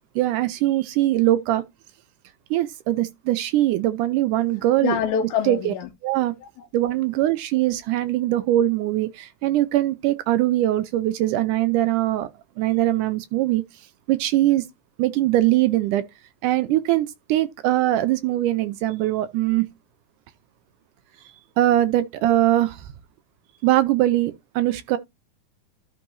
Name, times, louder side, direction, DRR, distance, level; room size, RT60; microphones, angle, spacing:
voice 1, 0.2-1.6 2.5-5.0 5.5-5.7 6.0-6.3 6.7-12.3 12.6-13.6 14.1-14.6 15.0-16.1 16.4-19.7 21.6-22.9 23.6-25.0, right 14 dB, 80° right, 2.0 m, -21 dB
voice 2, 4.8-5.9 6.4-6.7, left 8 dB, 75° left, 2.0 m, -26 dB
13.0 x 5.6 x 2.6 m
omnidirectional pair, 3.9 m